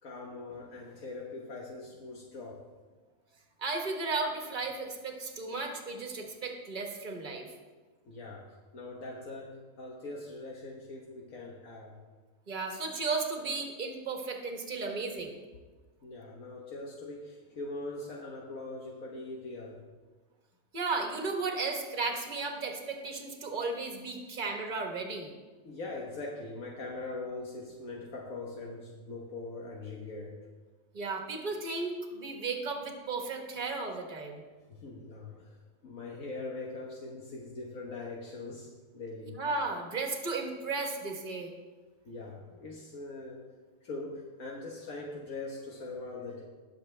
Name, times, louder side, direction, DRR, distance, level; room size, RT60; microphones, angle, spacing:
voice 1, 0.0-2.6 8.1-12.0 16.0-19.8 25.6-30.4 34.7-39.3 42.0-43.4 43.8-46.4, left 2 dB, 75° left, -2 dB, 1.6 m, -42 dB
voice 2, 3.6-7.5 12.5-15.4 20.7-25.3 30.9-34.4 39.3-41.5, right 3 dB, 35° right, 2 dB, 1.4 m, -34 dB
19.5 x 6.9 x 3.3 m, 1.3 s
omnidirectional pair, 1.5 m